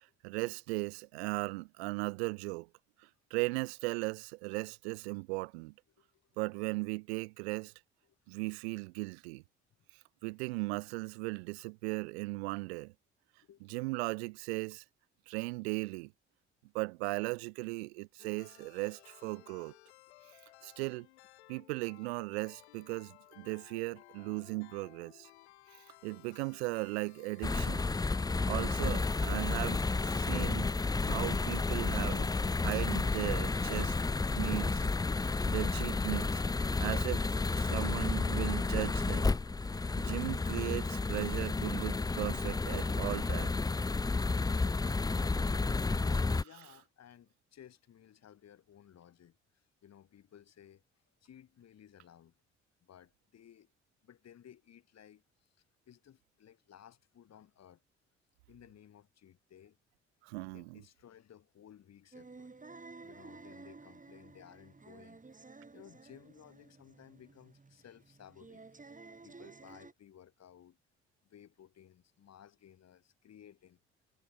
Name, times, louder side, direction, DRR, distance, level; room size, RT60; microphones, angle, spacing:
voice 1, 0.2-2.7 3.3-5.7 6.4-7.7 8.3-9.4 10.2-12.9 13.7-14.8 15.3-16.1 16.7-19.7 20.6-21.1 21.5-25.3 26.0-27.9 28.5-30.7 31.0-32.3 32.6-34.0 34.4-34.9 35.5-36.4 36.8-39.4 40.0-43.6 46.4-46.5 60.2-60.8, right 26 dB, 70° right, 0.8 m, -37 dB
voice 2, 6.0-6.3 7.7-7.8 13.5-13.7 20.5-20.7 46.0-50.8 51.2-52.4 52.8-53.7 54.0-55.5 55.9-57.8 58.5-59.8 60.5-62.5 63.0-65.5 65.7-68.6 69.2-70.8 71.2-73.8, left 10 dB, 50° left, 6.1 m, -58 dB
sound 1, 18.2-34.8, left 17 dB, 75° left, 4.8 m, -59 dB
sound 2, 27.4-46.4, left 3 dB, 10° left, 0.6 m, -31 dB
sound 3, 62.1-69.9, right 3 dB, 25° right, 5.5 m, -53 dB
figure-of-eight pair, 45°, 33 cm